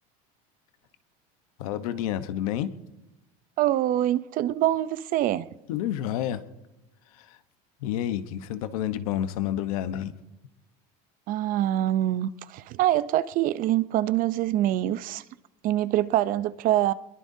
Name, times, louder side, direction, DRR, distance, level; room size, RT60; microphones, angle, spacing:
voice 1, 1.6-2.7 5.7-6.4 7.1-7.4 7.8-10.1, left 11 dB, 90° left, 1.1 m, -29 dB
voice 2, 3.6-5.5 11.3-15.2 15.6-16.9, right 13 dB, 50° right, 0.7 m, -25 dB
23.5 x 21.5 x 2.8 m
supercardioid pair, 120°, 18 cm